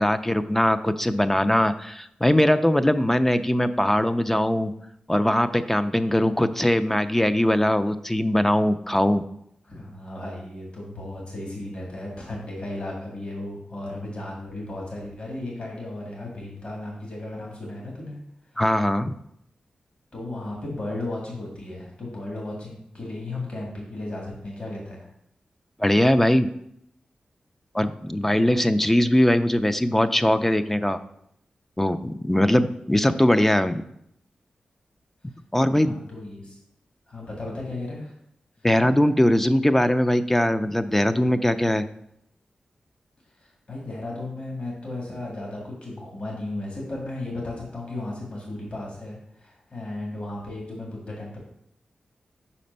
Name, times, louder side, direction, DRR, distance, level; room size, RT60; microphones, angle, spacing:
voice 1, 0.0-4.7 5.1-9.2 18.6-19.2 25.8-26.5 27.7-31.0 31.8-33.8 35.5-36.0 38.6-41.8, left 1 dB, 10° left, 10 dB, 0.3 m, -21 dB
voice 2, 9.6-18.2 20.1-25.1 28.3-28.6 35.7-36.6 37.1-38.1 43.4-51.4, left 2 dB, 50° left, -3 dB, 1.9 m, -35 dB
5.0 x 4.3 x 5.3 m, 0.74 s
wide cardioid pair, 75°, 3 cm